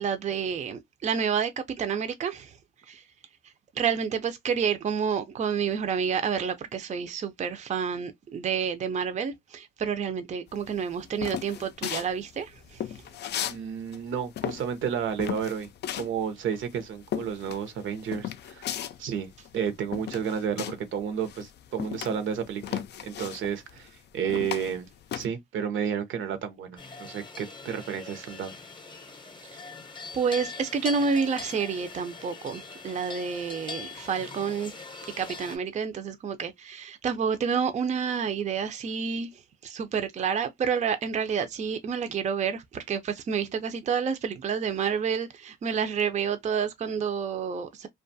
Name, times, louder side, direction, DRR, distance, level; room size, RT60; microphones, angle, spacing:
voice 1, 0.0-2.6 2.9-3.0 3.4-13.0 29.6-29.7 30.1-34.8 35.2-47.9, right 6 dB, 35° right, 0.5 m, -29 dB
sound 1, 10.6-13.6 13.9-21.0 21.2-25.3, left 10 dB, 60° left, 0.4 m, -35 dB
voice 2, 13.4-15.7 15.9-18.7 19.0-24.9 25.1-28.6, right 7 dB, 75° right, 0.7 m, -32 dB
sound 2, 26.8-35.6, left 4 dB, 25° left, 0.7 m, -42 dB
2.5 x 2.3 x 2.6 m
cardioid pair, 90°, 20 cm